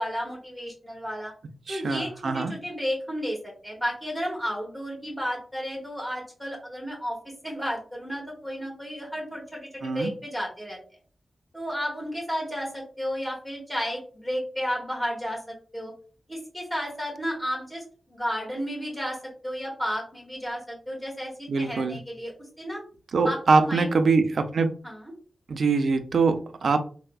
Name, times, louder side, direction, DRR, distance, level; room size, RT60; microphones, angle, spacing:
voice 1, 0.0-1.3 1.7-10.8 11.5-15.9 16.3-22.3 22.6-22.8 23.2-23.9 24.8-25.1, equal, 5° left, -2 dB, 1.1 m, -32 dB
voice 2, 1.7-2.5 9.8-10.1 21.5-22.0 23.1-24.7 25.5-26.8, right 4 dB, 70° right, 8 dB, 0.3 m, -23 dB
3.3 x 2.0 x 2.2 m, 0.41 s
wide cardioid pair, 130°, 0 cm